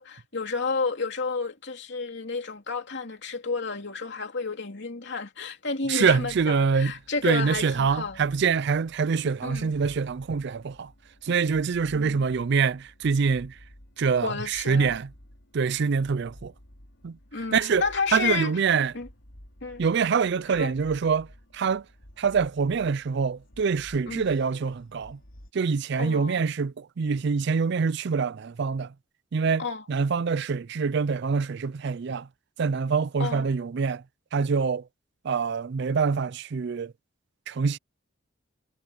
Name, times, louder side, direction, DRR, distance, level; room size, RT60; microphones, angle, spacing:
voice 1, 0.0-8.2 9.4-9.7 11.9-12.2 14.2-15.0 17.3-18.5 18.9-19.1 19.6-19.8 20.5-20.7 24.1-24.3 26.0-26.4 29.6-29.8 33.2-33.5, left 4 dB, 60° left, 3.1 m, -31 dB
voice 2, 5.9-6.9 7.2-10.9 11.2-13.5 14.0-15.1 15.5-16.5 17.0-17.2 17.5-17.8 18.1-18.9 19.8-21.3 21.5-21.8 22.2-25.2 25.5-28.9 29.3-32.3 32.6-34.0 34.3-34.8 35.2-36.9 37.5-37.8, right 5 dB, 55° right, 0.4 m, -25 dB
sound 1, 6.0-25.5, equal, 75° left, 3.5 m, -52 dB
head